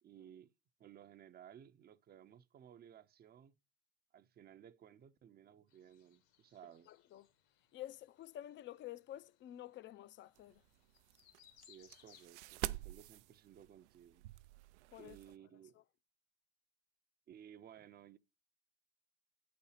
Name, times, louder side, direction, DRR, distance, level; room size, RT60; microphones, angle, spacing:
voice 1, 0.0-0.5 0.8-3.5 4.1-6.9 11.7-14.3 15.0-15.8 17.3-18.2, right 9 dB, 30° right, 0.6 m, -58 dB
sound 1, 5.7-12.3, left 10 dB, 70° left, 1.7 m, -68 dB
voice 2, 6.9-7.3 7.7-10.6 14.9-15.2 15.7-15.8, left 13 dB, 35° left, 0.5 m, -50 dB
sound 2, 10.4-15.4, right 17 dB, 80° right, 0.5 m, -47 dB
8.8 x 4.3 x 5.7 m
supercardioid pair, 100°, 34 cm